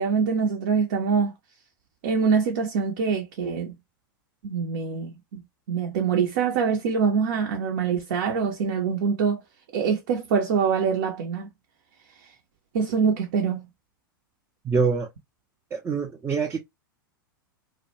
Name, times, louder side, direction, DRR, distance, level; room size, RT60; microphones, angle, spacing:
voice 1, 0.0-1.3 2.0-3.7 4.4-5.4 5.7-9.4 9.7-11.5 12.2-12.3 12.7-13.7, right 6 dB, 60° right, 0.6 m, -24 dB
voice 2, 14.6-15.1 15.7-16.6, right 5 dB, 20° right, 0.4 m, -25 dB
2.2 x 2.1 x 2.7 m
figure-of-eight pair, 95°, 11 cm